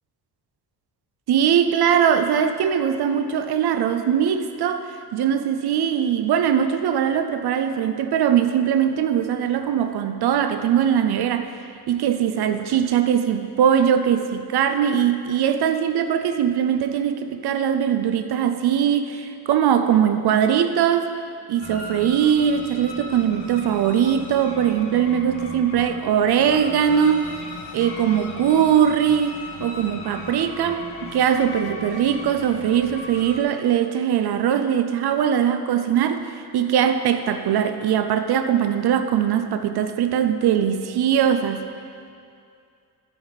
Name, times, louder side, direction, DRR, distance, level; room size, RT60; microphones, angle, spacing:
voice 1, 1.3-11.6 11.9-21.1 21.5-27.3 27.7-41.7, right 9 dB, 70° right, 8 dB, 0.6 m, -21 dB
sound 1, 21.6-33.4, left 3 dB, 85° left, 1.3 m, -38 dB
11.0 x 10.0 x 4.1 m, 2.4 s
cardioid pair, 145°, 40 cm